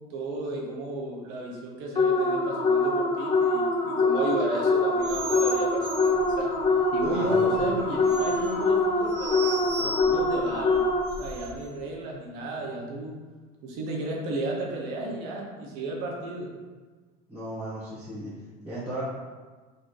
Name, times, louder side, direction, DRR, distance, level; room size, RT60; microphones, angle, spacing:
voice 1, 0.1-6.5 6.9-9.4 9.8-10.8 11.2-13.1 13.6-16.5, right 2 dB, 75° right, -1 dB, 1.0 m, -33 dB
sound 1, 1.9-11.3, left 2 dB, 25° left, 0.6 m, -24 dB
Boat Chain Creaking, 5.0-11.6, right 2 dB, 50° right, 1.1 m, -38 dB
voice 2, 7.0-7.6 12.7-12.8 17.3-18.3 18.6-19.0, right 1 dB, 10° right, -13 dB, 1.5 m, -35 dB
4.1 x 3.8 x 3.3 m, 1.4 s
cardioid pair, 130°, 19 cm